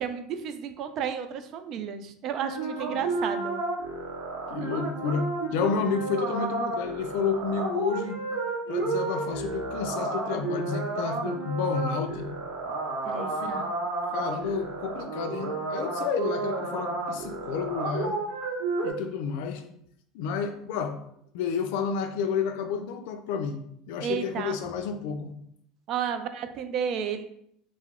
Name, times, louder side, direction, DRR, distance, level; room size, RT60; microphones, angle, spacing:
voice 1, 0.0-3.6 13.1-13.7 24.0-24.6 25.9-27.2, right 7 dB, 55° right, 9 dB, 0.3 m, -32 dB
sound 1, 2.4-18.9, right 3 dB, 75° right, 0.7 m, -31 dB
voice 2, 4.5-8.2 8.7-12.3 13.0-13.6 14.1-18.2 18.8-19.6 20.1-21.0 21.3-23.6 23.9-25.3, left 6 dB, 75° left, 7 dB, 0.3 m, -30 dB
2.8 x 2.0 x 3.6 m, 0.72 s
supercardioid pair, 95°, 0 cm